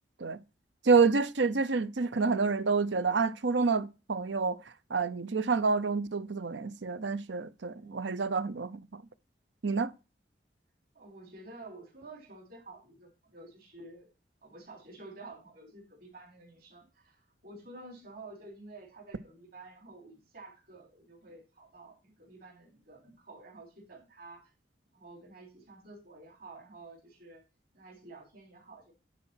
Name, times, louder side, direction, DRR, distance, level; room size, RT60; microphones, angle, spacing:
voice 1, 0.8-4.6 4.9-9.0 9.6-9.9, right 4 dB, 80° right, 0.7 m, -28 dB
voice 2, 7.7-8.3 10.9-14.1 14.4-24.5 24.9-27.4 27.7-28.9, right 2 dB, 55° right, 4.0 m, -51 dB
10.5 x 4.3 x 5.7 m
head